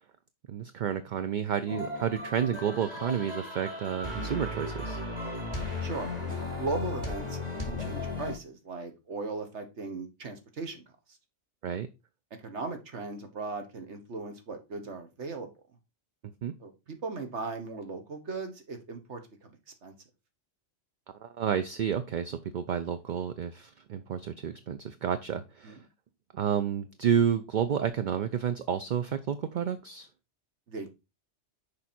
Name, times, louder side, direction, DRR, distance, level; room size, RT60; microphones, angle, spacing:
voice 1, 0.5-5.0 11.6-11.9 16.4-16.5 21.2-25.8 26.3-30.1, right 8 dB, 55° right, 10 dB, 0.6 m, -30 dB
sound 1, 1.7-8.3, left 2 dB, 35° right, 2.4 m, -35 dB
voice 2, 6.6-7.4 7.7-10.8 12.4-15.5 16.6-19.5 19.8-19.9 25.6-25.8 30.7-30.9, right 3 dB, 70° right, 6 dB, 1.7 m, -37 dB
6.8 x 4.9 x 4.3 m, 0.25 s
omnidirectional pair, 1.2 m